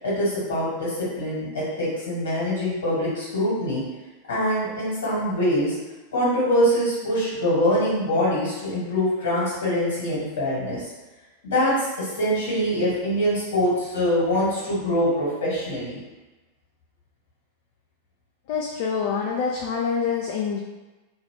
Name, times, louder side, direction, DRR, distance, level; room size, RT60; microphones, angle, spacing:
voice 1, 0.0-3.8 4.3-5.8 6.1-10.9 11.4-16.0, equal, 65° left, -7 dB, 1.4 m, -24 dB
voice 2, 18.5-20.6, left 6 dB, 50° left, 0 dB, 0.3 m, -26 dB
2.6 x 2.4 x 3.5 m, 1.2 s
figure-of-eight pair, 90°, 0 cm